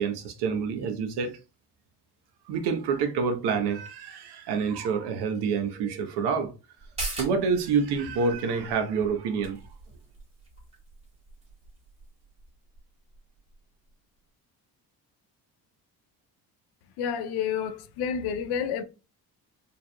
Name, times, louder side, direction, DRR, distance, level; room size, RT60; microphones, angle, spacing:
voice 1, 0.0-1.4 2.5-6.5 7.2-9.6, right 5 dB, 90° right, 1.0 m, -27 dB
sound 1, 6.8-13.9 14.3-14.4, right 2 dB, 15° right, 2.3 m, -42 dB
voice 2, 17.0-18.8, left 7 dB, 80° left, 0.7 m, -29 dB
4.7 x 3.3 x 2.2 m
cardioid pair, 145°, 39 cm